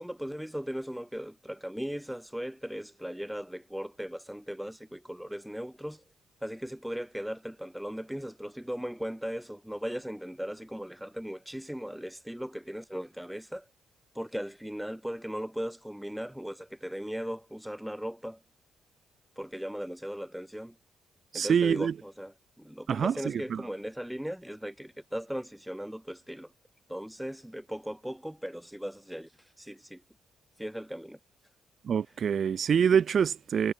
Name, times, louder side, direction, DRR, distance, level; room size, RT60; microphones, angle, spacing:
voice 1, 0.0-6.0 6.4-13.6 14.1-18.4 19.4-20.7 21.3-26.5 26.9-29.3 29.6-30.0 30.6-31.2, equal, 5° right, 4.3 m, -38 dB
voice 2, 21.3-21.9 22.9-23.6 31.8-33.7, right 7 dB, 55° right, 2.8 m, -26 dB
cardioid pair, 90°, 0 cm